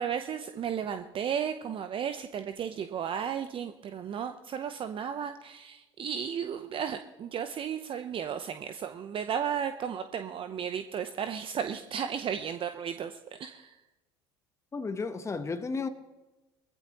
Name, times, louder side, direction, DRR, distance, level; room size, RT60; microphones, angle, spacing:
voice 1, 0.0-13.8, right 8 dB, 40° right, 0.8 m, -34 dB
voice 2, 14.7-15.9, left 4 dB, 20° left, 1.1 m, -33 dB
21.5 x 15.5 x 3.0 m
hypercardioid pair, 70°, 13 cm